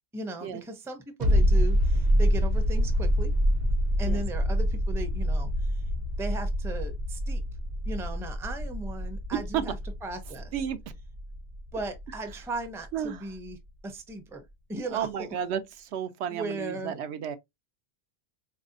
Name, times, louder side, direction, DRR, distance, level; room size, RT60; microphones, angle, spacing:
voice 1, 0.1-3.3 4.0-5.8 6.2-7.4 7.9-9.8 10.0-10.5 11.7-13.6 13.8-15.3 16.3-16.9, right 2 dB, 5° right, 0.4 m, -37 dB
sound 1, 1.2-12.5 12.8-12.9, equal, 50° right, 0.6 m, -26 dB
voice 2, 12.9-13.3 14.9-17.4, right 9 dB, 90° right, 0.9 m, -32 dB
4.1 x 2.6 x 2.5 m
omnidirectional pair, 1.1 m